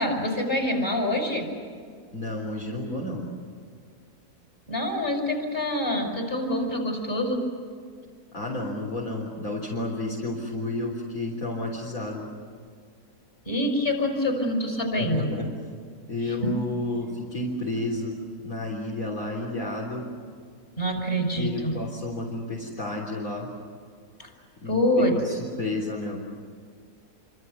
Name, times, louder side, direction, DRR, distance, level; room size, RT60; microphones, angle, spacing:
voice 1, 0.0-1.5 4.7-7.4 13.5-15.3 16.3-16.6 20.8-21.7 24.2-24.3 24.6-25.2, left 1 dB, 35° left, 4 dB, 6.4 m, -26 dB
voice 2, 2.1-3.3 8.3-12.3 15.0-15.5 16.1-18.2 18.4-20.0 21.4-23.5 24.6-26.2, left 2 dB, 55° left, -3 dB, 4.0 m, -31 dB
28.0 x 26.5 x 7.0 m, 2.1 s
omnidirectional pair, 1.8 m